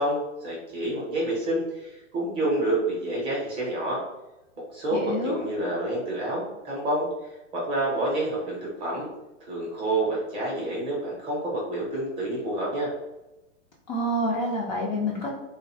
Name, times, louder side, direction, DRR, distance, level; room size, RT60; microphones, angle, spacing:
voice 1, 0.0-4.0 4.7-7.1 7.5-9.1 9.4-12.9, right 1 dB, 15° right, -4 dB, 0.6 m, -28 dB
voice 2, 4.9-5.4 13.9-15.3, equal, 35° left, -3 dB, 0.4 m, -27 dB
2.6 x 2.1 x 2.7 m, 0.97 s
hypercardioid pair, 135°, 39 cm